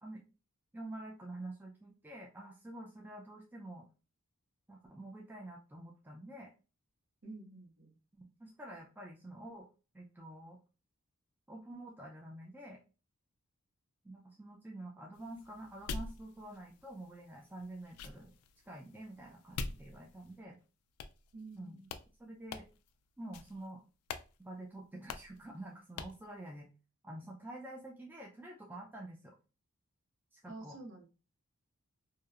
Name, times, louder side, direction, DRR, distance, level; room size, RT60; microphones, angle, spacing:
voice 1, 0.7-3.9 4.7-6.5 8.1-9.7 9.9-10.6 11.5-12.8 14.0-18.3 18.6-20.6 21.5-21.8 22.2-22.7 23.2-23.8 24.4-26.7 27.0-29.3 30.3-30.8, right 1 dB, 10° right, -2 dB, 0.3 m, -48 dB
voice 2, 7.2-8.0 21.3-21.9 30.5-31.0, right 2 dB, 60° right, 2 dB, 0.8 m, -49 dB
sound 1, 15.1-20.5 21.0-21.6 21.8-22.1 22.5-22.9 23.3-23.7 24.1-24.3 24.5-24.6 25.1-25.4 26.0-26.2, left 4 dB, 75° left, 0.3 m, -45 dB
2.7 x 2.0 x 2.3 m, 0.32 s
head